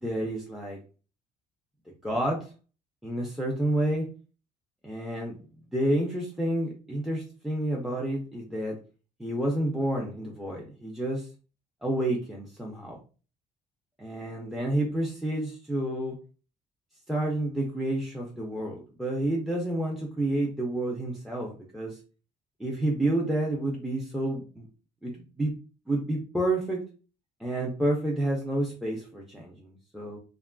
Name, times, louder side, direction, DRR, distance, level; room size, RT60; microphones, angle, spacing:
voice 1, 0.0-0.8 2.0-2.5 3.0-4.1 4.8-5.4 5.7-8.8 9.2-11.3 11.8-13.0 14.0-16.2 17.1-22.0 22.6-24.7 25.0-25.5 25.9-26.8 27.4-30.2, right 1 dB, ahead, -2 dB, 0.5 m, -29 dB
2.9 x 2.4 x 2.2 m, 0.36 s
cardioid pair, 110°, 17 cm